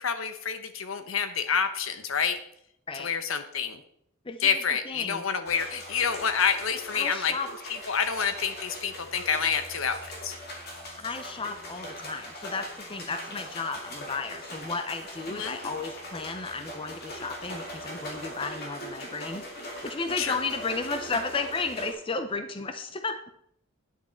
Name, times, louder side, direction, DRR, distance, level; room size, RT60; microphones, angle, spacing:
voice 1, 0.0-2.4 2.9-3.8 4.4-7.4 7.6-10.3 15.3-15.6 20.2-20.4, left 6 dB, 75° left, 10 dB, 0.9 m, -28 dB
voice 2, 4.2-4.6 4.9-5.2 6.9-7.5 11.0-23.2, left 4 dB, 25° left, 8 dB, 0.5 m, -34 dB
sound 1, 5.5-21.9, equal, 50° left, 2.2 m, -40 dB
9.9 x 8.2 x 4.4 m, 0.71 s
head